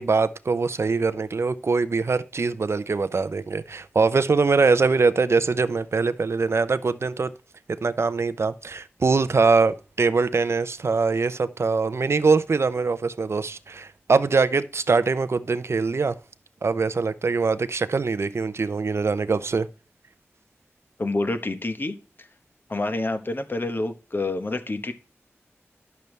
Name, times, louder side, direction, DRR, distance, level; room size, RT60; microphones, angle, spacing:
voice 1, 0.0-7.3 7.8-16.1 16.6-19.7, right 4 dB, 65° right, 0.5 m, -23 dB
voice 2, 21.0-21.9 22.7-24.9, left 2 dB, 45° left, 1.1 m, -27 dB
10.5 x 6.7 x 3.2 m
wide cardioid pair, 65°, 5 cm